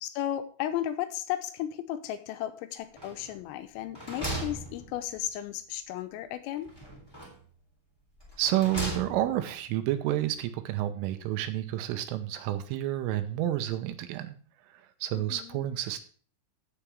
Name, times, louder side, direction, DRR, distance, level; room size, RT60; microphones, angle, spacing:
voice 1, 0.0-6.7 15.1-15.7, left 12 dB, 85° left, 10 dB, 3.4 m, -34 dB
sound 1, 3.0-3.5 3.8-5.4 6.6-7.5 8.2-9.5, right 1 dB, 5° left, 2.0 m, -38 dB
voice 2, 8.4-14.4 14.7-16.0, right 13 dB, 85° right, 9 dB, 3.2 m, -30 dB
14.5 x 7.3 x 3.5 m, 0.42 s
omnidirectional pair, 6.0 m